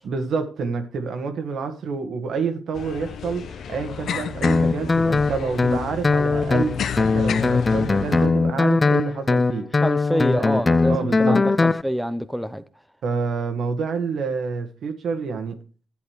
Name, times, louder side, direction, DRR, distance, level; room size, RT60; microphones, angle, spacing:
voice 1, 0.0-9.7 10.1-11.4 13.0-15.6, right 5 dB, 65° right, 1.7 m, -28 dB
sound 1, 2.7-8.3, left 7 dB, 65° left, 1.0 m, -31 dB
Guitar, 4.4-11.8, left 3 dB, 25° left, 0.4 m, -20 dB
voice 2, 9.8-12.6, equal, ahead, 0.8 m, -26 dB
11.0 x 8.5 x 4.8 m
cardioid pair, 90°, 0 cm